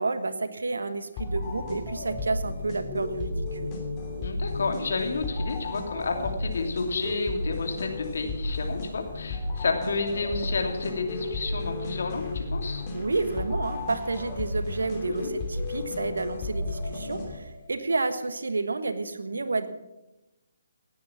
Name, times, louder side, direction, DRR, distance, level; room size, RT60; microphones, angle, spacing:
voice 1, 0.0-3.7 12.9-19.7, right 3 dB, 75° right, 10 dB, 1.5 m, -30 dB
sound 1, 1.2-17.7, left 2 dB, 25° left, 3.0 m, -33 dB
voice 2, 4.2-12.8 15.1-15.3, left 3 dB, 60° left, 4 dB, 2.7 m, -30 dB
18.0 x 9.5 x 6.0 m, 1.0 s
figure-of-eight pair, 145°, 0 cm